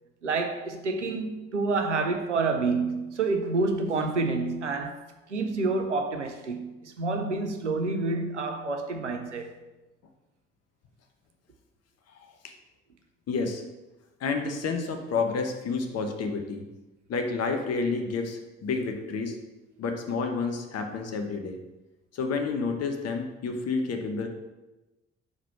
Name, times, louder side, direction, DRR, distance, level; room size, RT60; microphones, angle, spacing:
voice 1, 0.2-5.0 5.3-9.5, right 3 dB, 90° right, 0.5 m, -28 dB
voice 2, 13.3-13.6 14.2-16.6 17.1-19.4 19.8-21.6 22.1-24.3, left 4 dB, 45° left, 0.9 m, -30 dB
4.7 x 4.0 x 5.5 m
figure-of-eight pair, 40°, 35 cm